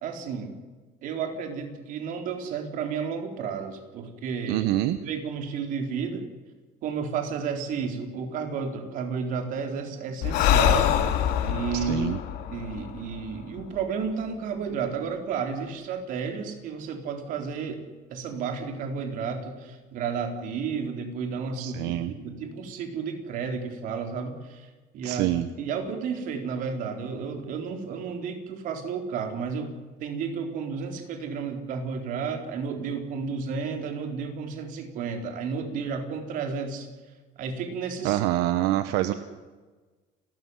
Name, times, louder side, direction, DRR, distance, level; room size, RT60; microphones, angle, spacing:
voice 1, 0.0-0.5 1.0-4.7 5.0-6.3 6.8-10.9 11.4-12.1 12.5-17.8 18.1-24.7 24.9-29.8 30.0-36.9 37.4-38.2, right 5 dB, 55° right, 5 dB, 4.1 m, -32 dB
voice 2, 4.5-5.0 11.7-12.2 21.6-22.1 25.0-25.5 38.0-39.1, right 14 dB, 80° right, 11 dB, 1.2 m, -26 dB
Breathing, 10.2-13.8, left 11 dB, 70° left, 2.5 m, -25 dB
30.0 x 13.5 x 9.8 m, 1.3 s
cardioid pair, 170°, 17 cm